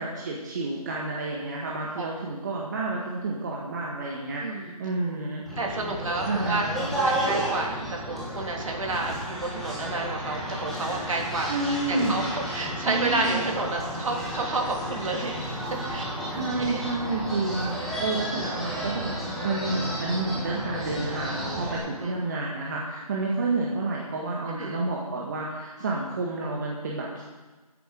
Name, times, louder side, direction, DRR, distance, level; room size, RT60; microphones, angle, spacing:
voice 1, 0.0-5.4 6.2-6.8 11.5-12.2 12.8-13.4 16.3-19.1 19.4-27.2, right 3 dB, 30° right, -3 dB, 1.5 m, -30 dB
voice 2, 4.4-4.7 5.6-11.5 11.9-15.6 15.8-16.1 16.6-16.9 22.0-22.2 24.5-24.8, right 2 dB, 55° right, 0 dB, 3.2 m, -30 dB
sound 1, 5.5-21.8, right 1 dB, ahead, 1.5 m, -32 dB
13.5 x 10.5 x 5.2 m, 1.3 s
figure-of-eight pair, 165°, 20 cm